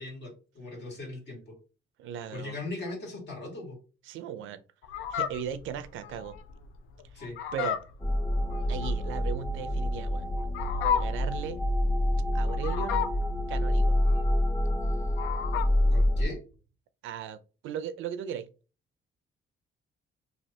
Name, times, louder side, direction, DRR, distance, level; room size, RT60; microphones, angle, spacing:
voice 1, 0.0-1.5 2.3-3.8 7.1-7.4 15.9-16.4, left 2 dB, 65° left, 1.8 m, -39 dB
voice 2, 2.0-2.6 4.0-4.6 5.1-6.4 7.1-7.2 7.5-7.8 8.7-10.3 11.0-11.6 12.3-13.0 13.5-13.9 17.0-17.4 17.6-18.5, right 8 dB, 80° right, 0.5 m, -37 dB
Fowl, 4.8-15.9, left 9 dB, 85° left, 0.4 m, -34 dB
sound 1, 8.0-16.2, left 1 dB, 15° left, 0.5 m, -27 dB
3.2 x 2.7 x 2.8 m
cardioid pair, 90°, 20 cm